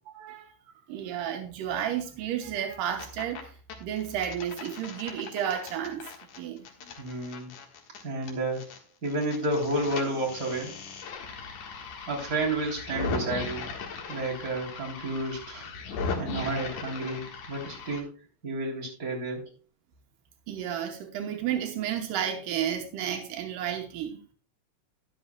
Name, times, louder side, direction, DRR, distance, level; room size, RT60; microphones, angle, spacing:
voice 1, 0.1-0.5 0.9-3.5 3.8-6.1 6.4-6.7 20.5-24.2, right 9 dB, 85° right, 2.6 m, -32 dB
sound 1, 2.7-3.4 3.7-8.8 9.0-18.0, left 4 dB, 70° left, 2.9 m, -38 dB
voice 2, 6.8-7.5 8.0-8.6 9.0-10.8 12.1-13.7 14.1-15.7 16.1-18.1 18.4-19.5, right 2 dB, 25° right, 3.6 m, -31 dB
13.0 x 11.0 x 2.2 m
omnidirectional pair, 3.7 m